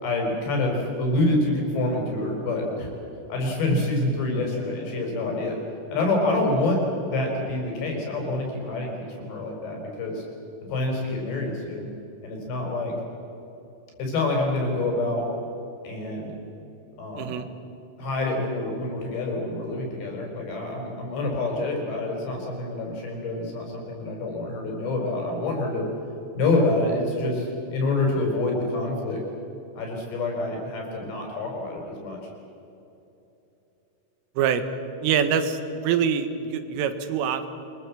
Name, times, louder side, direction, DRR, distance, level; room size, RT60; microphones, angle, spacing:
voice 1, 0.0-2.9 3.3-5.6 5.9-10.2 10.7-11.9 12.2-12.9 14.0-15.2 15.8-16.3 17.0-17.4 18.0-25.9 26.3-29.2 29.8-32.2, left 2 dB, 60° left, 0 dB, 7.0 m, -27 dB
voice 2, 17.2-17.5 34.4-34.6 35.0-37.5, right 7 dB, 90° right, 9 dB, 4.0 m, -24 dB
26.0 x 23.0 x 7.5 m, 3.0 s
omnidirectional pair, 5.7 m